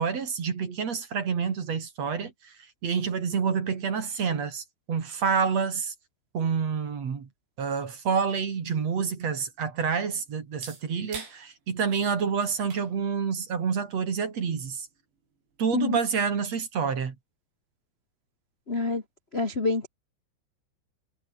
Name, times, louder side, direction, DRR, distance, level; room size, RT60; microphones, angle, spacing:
voice 1, 0.0-2.5 2.8-5.9 6.3-7.3 7.6-14.9 15.6-17.1, right 6 dB, 40° right, 3.3 m, -28 dB
sound 1, 8.6-16.1, right 5 dB, 80° right, 8.7 m, -50 dB
voice 2, 18.7-19.0 19.3-19.9, left 3 dB, 50° left, 0.7 m, -26 dB
omnidirectional pair, 5.1 m